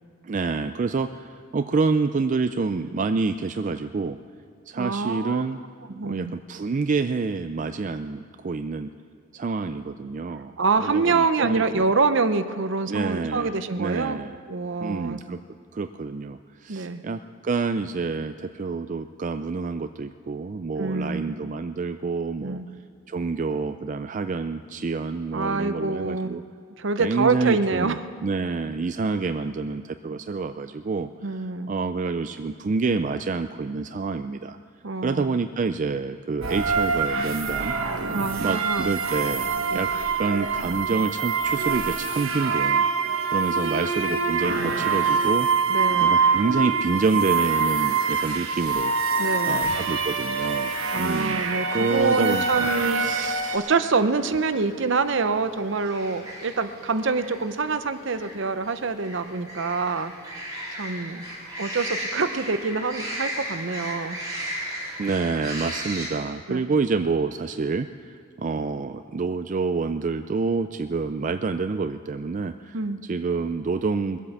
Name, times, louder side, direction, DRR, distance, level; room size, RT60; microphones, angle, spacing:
voice 1, 0.2-4.2 4.7-5.6 6.0-8.9 9.3-11.9 12.9-14.4 14.8-15.4 15.7-22.6 23.1-26.4 27.0-28.0 28.2-34.6 35.0-37.7 38.4-39.9 40.2-42.9 43.3-45.5 46.0-48.9 49.5-51.5 51.7-52.7 53.0-53.7 65.0-74.2, right 4 dB, 40° right, 9 dB, 0.4 m, -28 dB
voice 2, 4.7-5.4 5.9-6.3 10.6-14.2 14.5-15.2 16.7-17.0 20.8-21.3 22.4-22.7 25.3-26.4 26.8-27.9 31.2-31.7 34.8-35.4 38.1-38.9 39.7-39.8 45.7-46.1 49.2-49.6 50.9-60.1 60.8-61.2 61.6-64.2 66.5-66.6 72.7-73.0, right 4 dB, 65° right, 11 dB, 0.7 m, -26 dB
sound 1, 36.4-53.6, right 5 dB, 85° right, 1.2 m, -25 dB
sound 2, 47.3-66.1, equal, 20° right, 4.4 m, -38 dB
22.0 x 8.4 x 7.2 m, 2.1 s
head